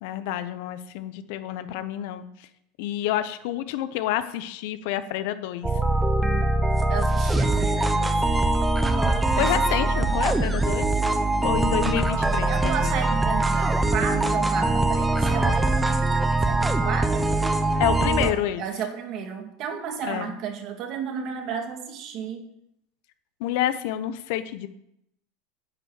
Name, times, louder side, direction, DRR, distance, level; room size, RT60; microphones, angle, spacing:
voice 1, 0.0-2.5 2.8-5.7 9.4-10.9 11.4-13.0 17.8-18.6 20.0-20.3 23.4-24.7, left 12 dB, 70° left, 12 dB, 0.8 m, -28 dB
sound 1, 5.6-18.3, right 2 dB, 10° right, 1.0 m, -22 dB
voice 2, 6.9-8.2 9.3-9.6 12.1-16.2 16.5-17.3 18.2-22.4, right 7 dB, 50° right, 5 dB, 1.9 m, -33 dB
10.5 x 5.5 x 7.4 m, 0.78 s
supercardioid pair, 125°, 0 cm